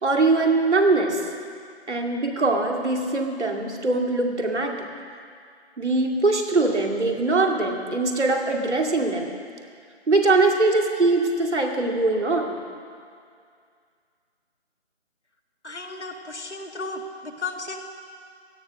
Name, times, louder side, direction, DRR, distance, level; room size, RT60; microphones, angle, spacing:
voice 1, 0.0-1.3 1.9-4.9 5.8-9.3 10.1-12.6, right 3 dB, 85° right, 1 dB, 2.5 m, -22 dB
voice 2, 15.6-17.8, left 3 dB, 80° left, 2 dB, 2.1 m, -34 dB
16.5 x 10.5 x 6.4 m, 2.2 s
figure-of-eight pair, 175°, 34 cm